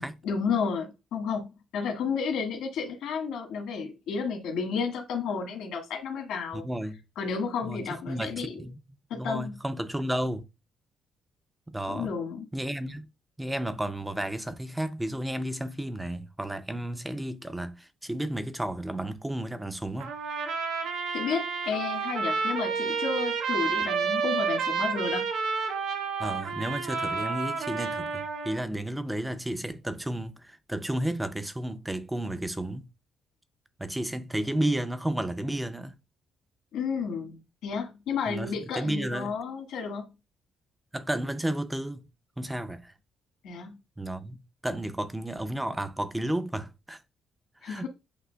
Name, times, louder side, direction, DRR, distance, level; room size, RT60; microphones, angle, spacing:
voice 1, 0.0-1.5 1.7-6.6 7.1-8.5 9.1-9.6 11.9-12.5 21.1-25.2 36.7-40.1 43.4-43.8 47.6-47.9, left 5 dB, 90° left, 1.6 m, -32 dB
voice 2, 6.5-7.0 7.6-8.8 9.1-10.5 11.7-12.1 12.5-13.1 13.4-20.2 26.2-32.9 33.8-35.9 38.3-39.3 40.9-42.1 42.4-42.9 44.0-44.4 44.6-47.0 47.6-47.9, right 1 dB, 5° right, 0.4 m, -32 dB
Trumpet, 20.0-28.6, right 5 dB, 80° right, 0.8 m, -30 dB
8.1 x 2.9 x 2.2 m
cardioid pair, 150°, 0 cm